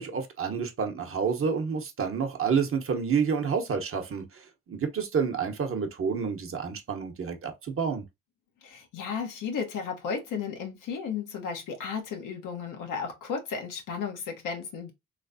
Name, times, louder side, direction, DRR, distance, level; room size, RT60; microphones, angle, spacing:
voice 1, 0.0-4.2 4.7-7.5 7.8-8.0, right 6 dB, 45° right, 0.9 m, -29 dB
voice 2, 8.6-14.9, left 6 dB, 85° left, 1.1 m, -34 dB
3.2 x 3.2 x 2.6 m
cardioid pair, 90°, 31 cm